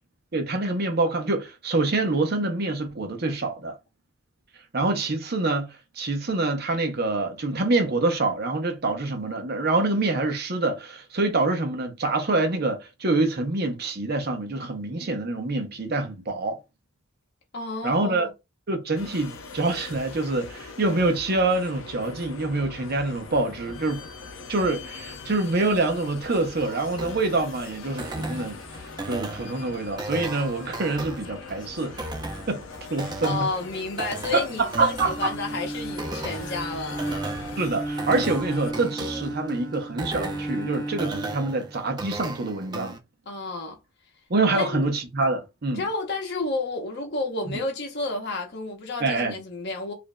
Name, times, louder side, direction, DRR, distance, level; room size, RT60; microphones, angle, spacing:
voice 1, 0.3-3.7 4.7-16.6 17.8-18.3 18.7-24.0 24.5-28.6 29.1-32.1 32.5-32.6 32.9-33.5 34.3-35.3 37.6-43.0 44.3-45.8 49.0-49.3, right 2 dB, 50° right, 0.7 m, -26 dB
voice 2, 17.5-18.3 33.0-37.1 43.3-43.8 44.5-44.9 45.7-49.9, left 3 dB, 55° left, 0.9 m, -31 dB
sound 1, 18.9-38.7, left 4 dB, 75° left, 0.6 m, -42 dB
sound 2, 27.0-43.0, right 2 dB, 20° right, 0.5 m, -36 dB
Bowed string instrument, 35.0-42.2, right 1 dB, 15° left, 1.1 m, -34 dB
5.0 x 2.6 x 2.2 m
head